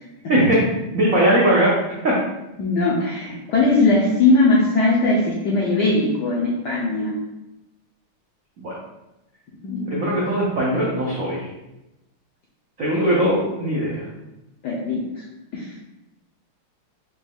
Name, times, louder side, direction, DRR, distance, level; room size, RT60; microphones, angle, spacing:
voice 1, 0.3-0.6 0.9-1.8 2.0-2.2 8.6-8.7 9.9-11.5 12.8-14.1, right 1 dB, 85° right, -5 dB, 0.7 m, -20 dB
voice 2, 2.6-7.2 9.6-10.5 14.6-15.3 15.5-15.8, left 2 dB, 75° left, -4 dB, 1.0 m, -20 dB
4.9 x 2.2 x 3.5 m, 0.96 s
omnidirectional pair, 2.4 m